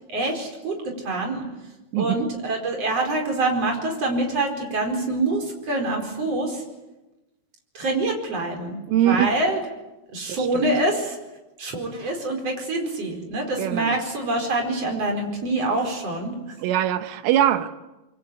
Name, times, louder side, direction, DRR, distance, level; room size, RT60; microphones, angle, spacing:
voice 1, 0.1-1.5 1.9-6.6 7.8-9.6 10.1-11.2 11.6-16.4, right 2 dB, 30° right, 2 dB, 5.3 m, -25 dB
voice 2, 1.9-2.3 8.9-9.3 10.4-10.7 13.6-14.0 16.6-17.7, right 11 dB, 80° right, 9 dB, 3.8 m, -22 dB
25.0 x 23.5 x 8.8 m, 1.0 s
omnidirectional pair, 5.8 m